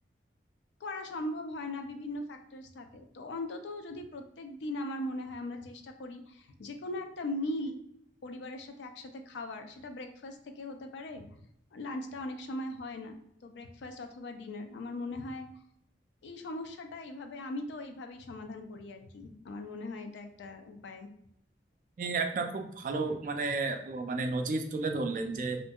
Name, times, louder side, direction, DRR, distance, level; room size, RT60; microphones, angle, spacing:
voice 1, 0.8-7.8 8.2-11.3 11.7-13.2 13.4-15.5 16.2-21.1, left 1 dB, 90° left, 6 dB, 0.4 m, -39 dB
voice 2, 22.0-25.6, right 3 dB, 45° right, 5 dB, 0.3 m, -32 dB
2.7 x 2.4 x 2.2 m, 0.71 s
head